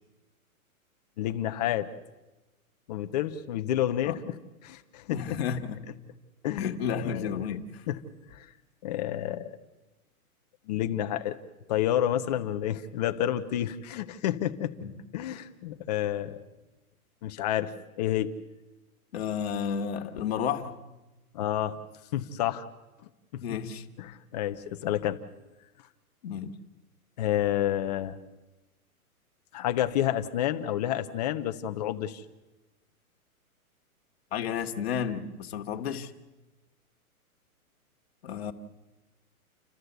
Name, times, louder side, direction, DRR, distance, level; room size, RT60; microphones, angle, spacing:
voice 1, 1.2-1.9 2.9-4.4 4.6-5.2 6.4-7.4 7.9-8.0 8.3-8.5 8.8-9.5 10.7-11.4 11.7-14.7 15.1-16.4 17.2-17.7 18.0-18.3 21.3-21.8 22.1-22.7 23.3-23.4 24.0-25.2 27.2-28.2 29.5-32.2, left 12 dB, 30° left, 8 dB, 1.0 m, -29 dB
voice 2, 5.1-5.8 6.6-7.8 14.8-14.9 19.1-20.8 23.4-23.9 26.2-26.6 34.3-36.1 38.2-38.5, left 7 dB, 45° left, 5 dB, 1.7 m, -32 dB
29.5 x 13.0 x 8.1 m, 1.1 s
hypercardioid pair, 165°, 44 cm